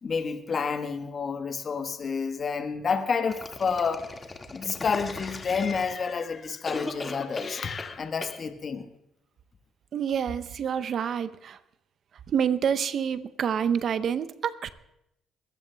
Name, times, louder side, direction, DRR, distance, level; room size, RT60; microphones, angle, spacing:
voice 1, 0.0-4.1 4.5-8.9, left 5 dB, 50° left, 8 dB, 1.2 m, -29 dB
sound 1, 3.3-6.2 6.6-7.9 8.2-8.4, left 3 dB, 30° left, 1.8 m, -38 dB
voice 2, 9.9-11.6 12.3-14.7, right 8 dB, 60° right, 13 dB, 0.6 m, -27 dB
22.0 x 16.0 x 2.3 m, 0.83 s
hypercardioid pair, 55°, 0 cm